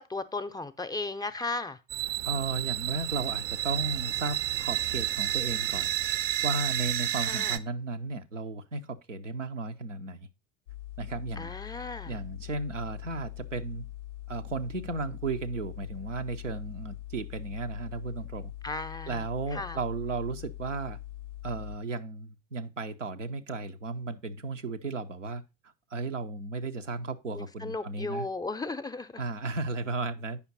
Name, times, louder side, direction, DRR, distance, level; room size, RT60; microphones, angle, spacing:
voice 1, 0.0-1.8 7.2-7.6 11.4-12.2 18.6-19.2 19.5-19.8 27.3-29.2, left 3 dB, 10° left, 0.5 m, -35 dB
sound 1, 1.9-7.6, right 13 dB, 40° right, 0.5 m, -30 dB
voice 2, 2.2-5.9 6.4-10.3 11.0-11.5 12.1-13.9 14.3-18.5 19.1-21.0 21.4-25.4 25.9-28.3 29.2-30.4, right 3 dB, 90° right, 0.7 m, -34 dB
sound 2, 10.7-21.8, left 15 dB, 75° left, 0.5 m, -43 dB
8.4 x 5.7 x 4.0 m
figure-of-eight pair, 70°, 36 cm